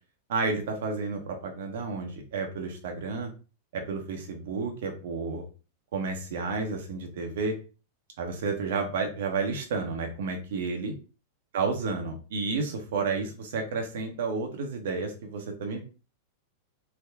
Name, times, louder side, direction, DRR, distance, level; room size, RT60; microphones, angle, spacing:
voice 1, 0.3-3.3 3.7-5.4 5.9-7.5 8.2-10.9 11.5-15.9, right 4 dB, 70° right, 4 dB, 0.7 m, -31 dB
3.5 x 2.1 x 3.5 m, 0.34 s
hypercardioid pair, 110°, 0 cm